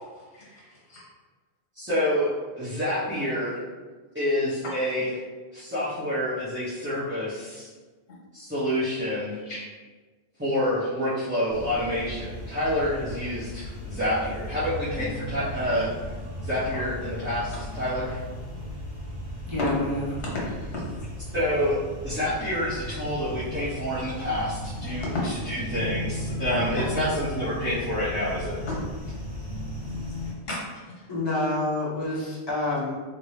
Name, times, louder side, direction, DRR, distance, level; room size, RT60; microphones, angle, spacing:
voice 1, 0.3-1.0 9.1-9.6 17.5-17.6 19.6-19.7 20.2-20.3 20.7-20.9 25.1-25.3 28.6-28.8 30.5-31.1, left 2 dB, 65° left, -5 dB, 1.1 m, -34 dB
voice 2, 1.8-3.6 4.1-5.1 5.5-7.7 8.3-9.4 10.4-15.9 16.4-18.2 21.3-21.8 22.0-25.1 25.5-28.6, left 1 dB, 10° right, -14 dB, 0.8 m, -28 dB
sound 1, 11.5-30.3, equal, 40° left, 1.5 m, -36 dB
voice 3, 19.5-20.1 31.1-32.9, left 2 dB, 25° left, -8 dB, 0.9 m, -27 dB
3.0 x 2.7 x 3.1 m, 1.4 s
omnidirectional pair, 1.1 m